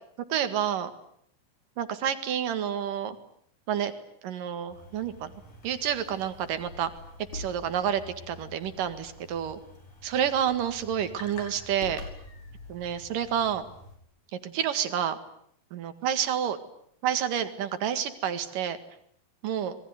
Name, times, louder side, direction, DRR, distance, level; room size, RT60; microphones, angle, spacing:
voice 1, 0.3-0.9 1.8-3.2 3.7-3.9 4.2-5.3 5.6-6.9 7.3-8.0 8.3-9.6 10.0-12.0 12.7-13.7 14.4-15.2 15.7-16.6 17.0-18.8 19.4-19.8, right 9 dB, 75° right, 10 dB, 3.5 m, -29 dB
sound 1, 4.7-14.0, left 2 dB, 65° left, 7.2 m, -46 dB
26.5 x 21.5 x 9.4 m, 0.68 s
omnidirectional pair, 3.9 m